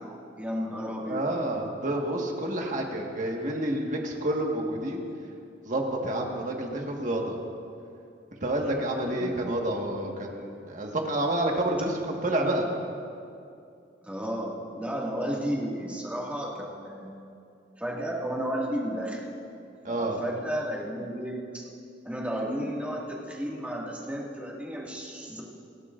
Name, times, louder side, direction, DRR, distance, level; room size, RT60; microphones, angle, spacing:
voice 1, 0.0-1.4 9.2-9.7 14.0-17.1 17.8-19.2 19.8-21.7 22.0-25.4, equal, 10° right, -4 dB, 2.0 m, -33 dB
voice 2, 0.8-5.0 5.7-7.4 8.4-12.7 19.8-20.2, right 1 dB, 45° right, 0 dB, 1.6 m, -29 dB
29.5 x 11.5 x 2.6 m, 2.5 s
head